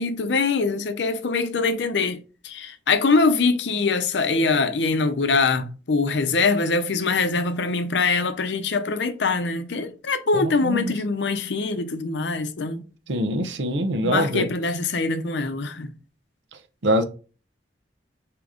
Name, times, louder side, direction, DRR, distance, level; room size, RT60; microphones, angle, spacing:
voice 1, 0.0-2.2 2.4-12.8 14.0-15.9, left 4 dB, 80° left, 0.6 m, -23 dB
voice 2, 10.4-10.9 13.1-14.5 16.8-17.0, equal, 90° right, 0.7 m, -23 dB
4.9 x 2.9 x 3.6 m
head